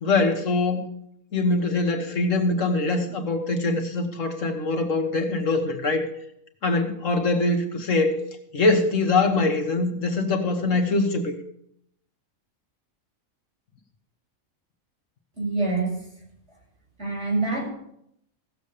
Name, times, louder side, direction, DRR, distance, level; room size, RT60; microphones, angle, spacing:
voice 1, 0.0-0.8 1.3-6.1 6.6-8.2 8.5-11.3, left 3 dB, 65° left, 4 dB, 1.7 m, -23 dB
voice 2, 15.4-16.0 17.0-17.7, right 3 dB, 55° right, -4 dB, 6.3 m, -25 dB
16.0 x 7.1 x 6.7 m, 0.75 s
omnidirectional pair, 1.4 m